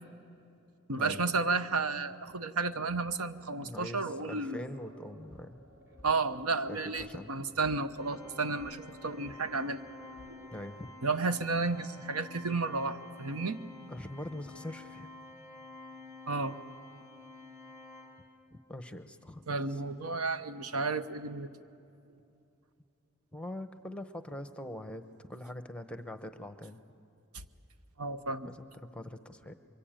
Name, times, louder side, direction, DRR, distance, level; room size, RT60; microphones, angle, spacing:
voice 1, 0.9-4.7 6.0-9.8 11.0-13.6 16.3-16.6 19.5-21.5 28.0-28.5, right 3 dB, 85° right, 10 dB, 1.0 m, -32 dB
voice 2, 3.6-5.6 6.7-7.3 10.5-10.9 13.9-15.1 18.5-19.4 19.7-19.8 23.3-25.0 25.3-26.8 28.4-29.5, left 1 dB, 5° left, 9 dB, 0.8 m, -43 dB
sound 1, 4.7-10.7, equal, 55° right, 3.3 m, -56 dB
Organ, 8.0-18.7, left 3 dB, 15° right, 1.5 m, -51 dB
27.5 x 23.5 x 8.9 m, 2.7 s
head